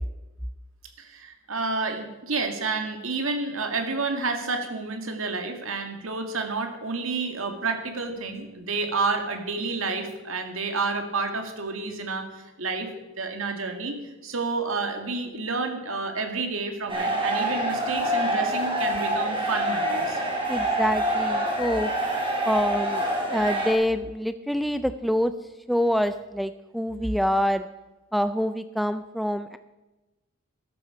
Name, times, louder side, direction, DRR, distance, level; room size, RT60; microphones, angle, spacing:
voice 1, 1.0-12.9 13.2-14.0 14.2-20.2, right 4 dB, 75° right, 5 dB, 2.2 m, -30 dB
sound 1, 16.9-23.7, right 1 dB, 25° right, 3.9 m, -26 dB
voice 2, 20.5-21.9 22.4-23.0 23.3-25.3 25.7-27.7 28.1-29.6, equal, ahead, 11 dB, 0.3 m, -26 dB
13.5 x 12.5 x 5.1 m, 1.1 s
head